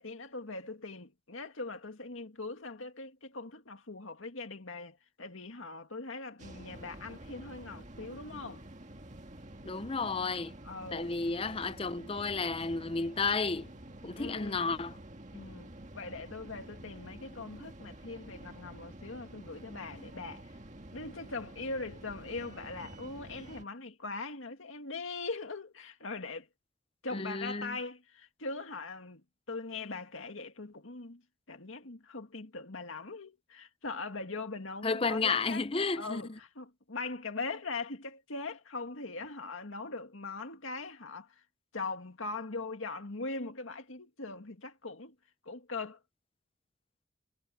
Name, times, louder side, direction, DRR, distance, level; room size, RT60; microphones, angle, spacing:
voice 1, 0.0-8.6 10.6-11.2 14.2-14.7 15.3-20.6 20.9-26.5 27.0-29.2 29.5-31.2 31.5-35.7 36.0-41.4 41.7-45.1 45.4-46.0, left 3 dB, 80° left, 2.0 m, -41 dB
sound 1, 6.4-23.6, right 1 dB, 35° right, 1.9 m, -49 dB
voice 2, 9.6-10.5 10.9-13.7 14.0-15.0 27.1-27.8 34.8-36.2, left 4 dB, 25° left, 0.6 m, -32 dB
head